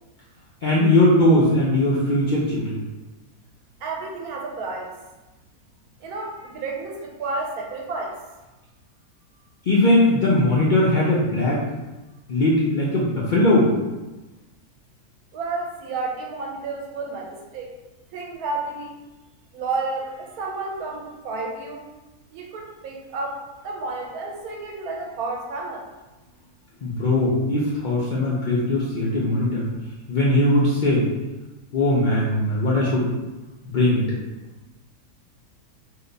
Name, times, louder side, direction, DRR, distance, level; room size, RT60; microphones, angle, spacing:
voice 1, 0.6-2.8 9.7-11.6 12.3-13.7 26.8-29.7 30.1-31.1 31.7-33.1 33.6-34.1, left 1 dB, 80° left, -7 dB, 0.4 m, -19 dB
voice 2, 3.8-4.9 6.0-8.1 15.3-17.7 18.1-18.9 19.5-21.8 22.3-25.8, right 3 dB, 85° right, 1 dB, 1.1 m, -31 dB
2.8 x 2.1 x 3.8 m, 1.1 s
omnidirectional pair, 1.5 m